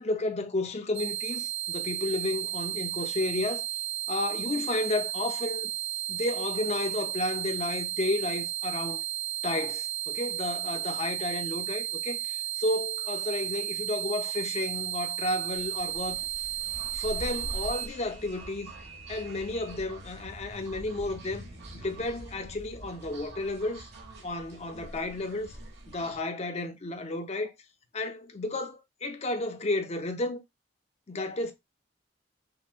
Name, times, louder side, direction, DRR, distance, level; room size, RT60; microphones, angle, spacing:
voice 1, 0.0-3.6 4.1-5.7 6.1-9.0 9.4-16.2 16.9-18.7 19.1-21.5 21.7-23.8 24.2-25.5 25.9-27.5 27.9-30.4 31.1-31.5, left 2 dB, 35° left, 0.6 m, -32 dB
sound 1, 0.9-17.9, right 13 dB, 90° right, 0.4 m, -33 dB
sound 2, 15.5-26.2, right 1 dB, 65° right, 1.1 m, -44 dB
5.6 x 2.1 x 2.4 m
head